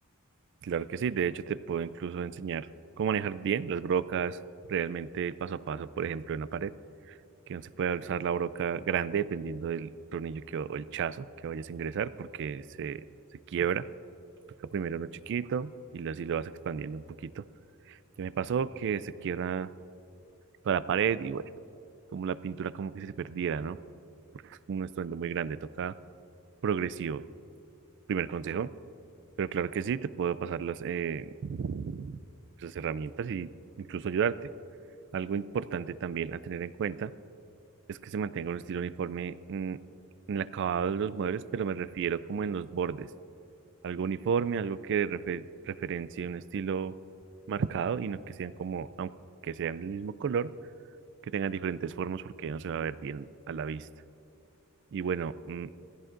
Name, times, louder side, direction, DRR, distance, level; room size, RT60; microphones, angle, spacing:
voice 1, 0.6-2.7 3.0-4.4 4.7-6.7 7.5-13.0 13.5-13.9 14.7-17.5 17.9-19.7 20.6-21.5 22.1-23.8 24.4-25.9 26.6-27.2 28.1-28.7 29.4-32.2 32.6-33.5 33.8-34.5 35.1-37.1 37.9-39.8 40.3-43.1 43.8-46.9 47.5-49.1 49.4-50.5 51.2-53.9 54.9-55.7, right 7 dB, 55° right, 16 dB, 0.3 m, -32 dB
17.5 x 15.0 x 2.5 m, 2.8 s
head